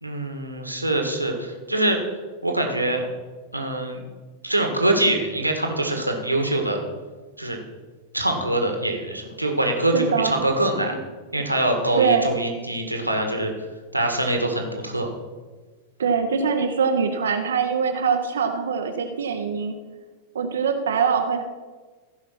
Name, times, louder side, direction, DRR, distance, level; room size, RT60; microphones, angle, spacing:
voice 1, 0.0-2.0 2.4-3.0 3.5-4.0 4.4-6.8 7.4-7.6 8.1-11.0 11.3-13.5 13.9-15.1, right 1 dB, 85° right, 3 dB, 1.7 m, -24 dB
voice 2, 9.9-10.4 12.0-12.3 16.0-19.7 20.3-21.4, right 6 dB, 65° right, 6 dB, 0.9 m, -23 dB
15.5 x 5.6 x 5.9 m, 1.3 s
figure-of-eight pair, 90°, 0 cm